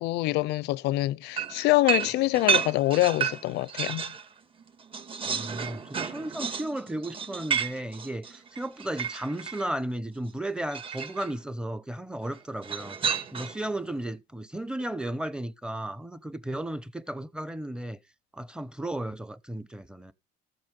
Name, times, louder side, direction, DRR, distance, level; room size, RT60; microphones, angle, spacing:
voice 1, 0.0-4.0, left 18 dB, 85° left, 0.6 m, -25 dB
sound 1, 1.4-4.2 4.6-9.7 10.7-11.3 12.6-13.7, right 7 dB, 30° right, 2.1 m, -31 dB
voice 2, 5.3-13.0 13.3-18.0 18.3-20.1, right 1 dB, 5° right, 1.0 m, -34 dB
14.5 x 7.8 x 5.4 m
cardioid pair, 110°, 17 cm